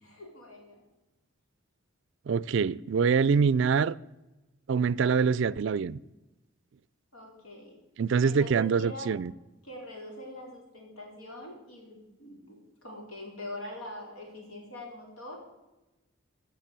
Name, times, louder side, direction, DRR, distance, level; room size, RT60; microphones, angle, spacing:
voice 1, 0.0-0.8 7.1-7.7 8.2-9.1 9.6-15.4, left 1 dB, 90° left, 4.3 m, -43 dB
voice 2, 2.3-3.9 4.7-6.0 8.0-9.3, right 5 dB, 60° right, 0.4 m, -25 dB
15.0 x 6.3 x 7.4 m
head